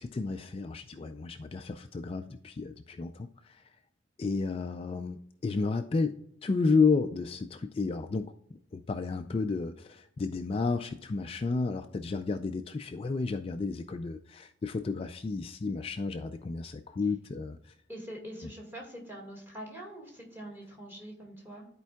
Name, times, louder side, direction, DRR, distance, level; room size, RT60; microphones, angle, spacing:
voice 1, 0.0-3.6 4.2-8.3 8.7-17.7 18.4-18.5, left 4 dB, 30° left, 7 dB, 0.3 m, -32 dB
voice 2, 17.9-21.7, right 1 dB, 10° right, -1 dB, 1.9 m, -44 dB
13.0 x 4.5 x 2.3 m, 0.74 s
head